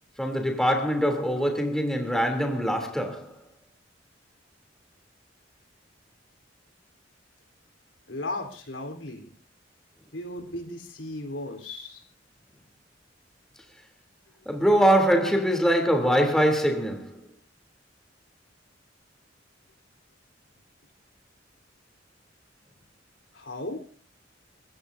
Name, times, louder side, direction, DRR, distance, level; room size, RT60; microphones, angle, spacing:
voice 1, 0.2-3.4 14.4-17.2, equal, 5° left, 3.0 m, -23 dB
voice 2, 8.1-9.3 10.1-12.0 15.2-15.3 23.3-23.8, left 2 dB, 80° left, 3.8 m, -36 dB
28.5 x 15.5 x 2.7 m
head